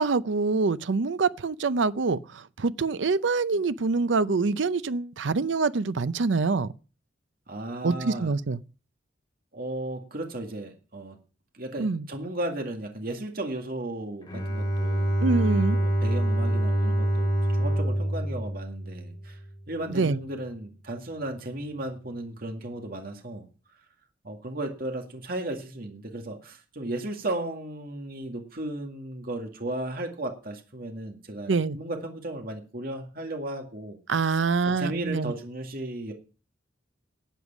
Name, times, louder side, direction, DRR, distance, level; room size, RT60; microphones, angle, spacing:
voice 1, 0.0-6.7 7.8-8.6 11.8-12.0 15.2-15.8 19.9-20.2 31.5-31.8 34.1-35.3, right 4 dB, 75° right, 0.6 m, -25 dB
voice 2, 7.5-8.3 9.5-11.2 11.5-15.1 15.7-19.4 19.7-23.5 24.2-34.0 34.3-34.4 34.7-36.1, right 1 dB, 50° right, 2.1 m, -35 dB
Bowed string instrument, 14.2-19.5, right 1 dB, 25° left, 4.5 m, -26 dB
12.5 x 8.2 x 6.0 m
head